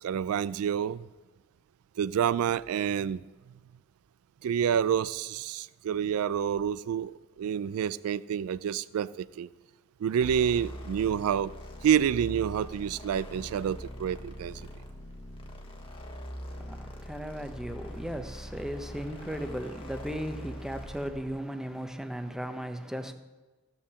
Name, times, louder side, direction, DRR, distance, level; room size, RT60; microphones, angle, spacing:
voice 1, 0.0-1.1 2.0-3.2 4.4-9.5 10.0-11.5 11.8-14.7, right 8 dB, 90° right, 0.3 m, -28 dB
sound 1, 10.2-21.3, equal, 25° left, 1.2 m, -42 dB
voice 2, 16.5-23.1, equal, ahead, 0.7 m, -36 dB
15.0 x 5.7 x 6.8 m
head